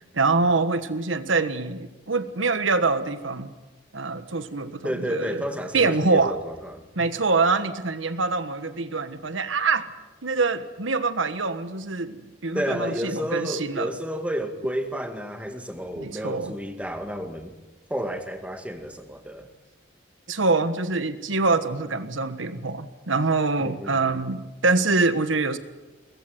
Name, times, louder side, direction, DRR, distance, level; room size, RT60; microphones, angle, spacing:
voice 1, 0.1-3.5 3.9-5.4 5.7-6.3 6.9-9.9 10.2-13.9 16.0-16.5 20.3-25.6, right 3 dB, 90° right, 11 dB, 1.4 m, -25 dB
voice 2, 4.8-6.8 12.5-17.5 17.9-19.5 23.6-24.2, equal, 5° right, 6 dB, 2.0 m, -31 dB
23.0 x 20.0 x 9.2 m, 1.1 s
head